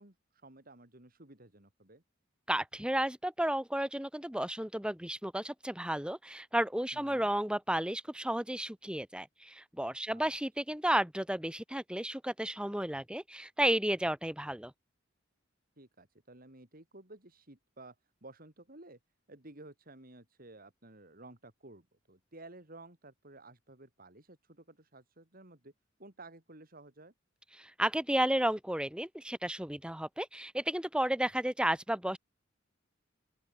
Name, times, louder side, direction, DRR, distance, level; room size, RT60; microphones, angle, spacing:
voice 1, 0.0-2.0 6.9-7.3 10.1-10.3 15.8-18.0 18.2-19.0 19.3-25.7 26.0-27.1, right 2 dB, 50° right, 4.7 m, -54 dB
voice 2, 2.5-14.7 27.6-32.2, right 1 dB, 5° right, 1.8 m, -32 dB
open air
head